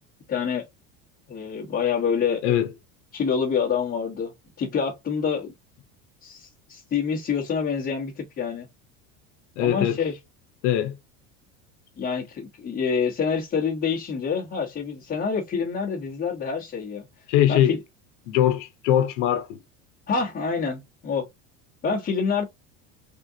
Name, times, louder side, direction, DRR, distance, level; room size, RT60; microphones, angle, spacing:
voice 1, 0.3-0.6 1.3-2.4 3.1-5.5 6.2-8.7 9.6-10.1 12.0-17.1 17.5-17.8 20.1-21.3 21.8-22.4, left 6 dB, 25° left, 1.1 m, -27 dB
voice 2, 9.6-10.0 10.6-11.0 17.3-17.8 18.3-19.6, left 11 dB, 85° left, 0.8 m, -21 dB
3.6 x 2.5 x 2.7 m
supercardioid pair, 120°, 34 cm